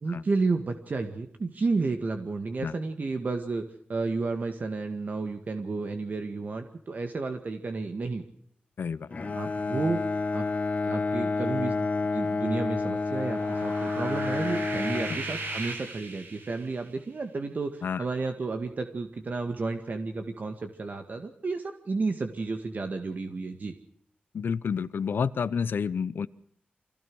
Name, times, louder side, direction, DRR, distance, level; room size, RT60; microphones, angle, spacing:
voice 1, 0.0-3.6 3.9-8.2 9.3-10.0 10.3-10.5 10.8-23.7, right 3 dB, 55° right, 6 dB, 1.9 m, -32 dB
voice 2, 8.8-9.1 17.8-18.0 24.3-26.3, left 6 dB, 80° left, 15 dB, 0.8 m, -29 dB
Bowed string instrument, 9.1-15.8, left 3 dB, 45° left, 2.0 m, -29 dB
sound 1, 13.1-16.8, right 3 dB, 80° right, 5.6 m, -37 dB
25.0 x 17.0 x 6.3 m, 0.64 s
wide cardioid pair, 90°, 3 cm